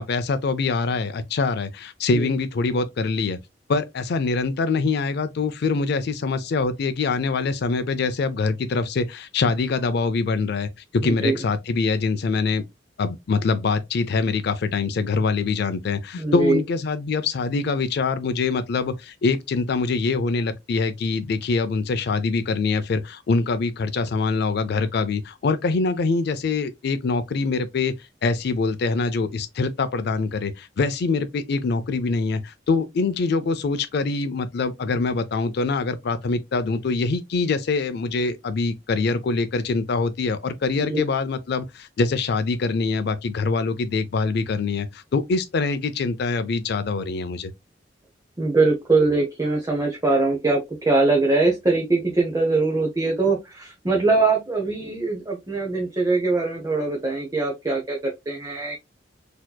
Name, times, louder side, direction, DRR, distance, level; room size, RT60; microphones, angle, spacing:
voice 1, 0.0-3.4 3.7-12.6 13.0-27.9 28.2-47.5, left 4 dB, 55° left, 0.4 m, -24 dB
voice 2, 11.0-11.4 16.2-16.6 40.9-41.0 48.4-58.8, right 3 dB, 20° right, 0.7 m, -22 dB
4.3 x 2.8 x 2.2 m
head